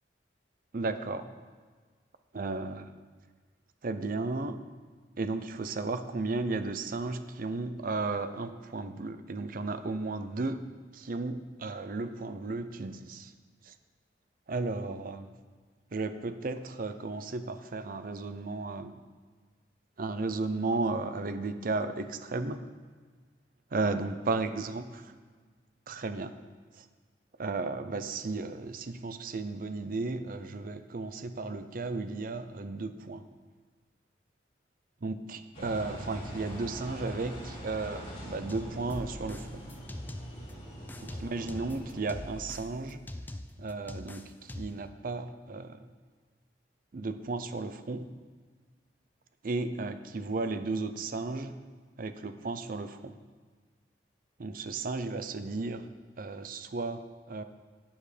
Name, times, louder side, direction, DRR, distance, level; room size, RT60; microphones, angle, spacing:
voice 1, 0.7-1.3 2.3-2.9 3.8-4.6 5.2-10.6 10.9-13.3 13.6-13.7 14.5-15.3 15.9-19.0 20.0-22.6 23.7-25.2 25.9-26.4 26.8-26.9 27.4-33.3 35.0-39.7 41.0-43.0 43.6-45.8 46.9-48.1 49.4-51.6 52.0-53.2 54.4-55.9 56.2-57.4, right 3 dB, 50° right, 10 dB, 0.6 m, -34 dB
Engine, 35.5-42.5, equal, 35° left, 3.5 m, -43 dB
sound 1, 38.5-40.5 40.9-44.9, left 1 dB, 10° left, 0.4 m, -43 dB
12.5 x 8.9 x 3.4 m, 1.5 s
head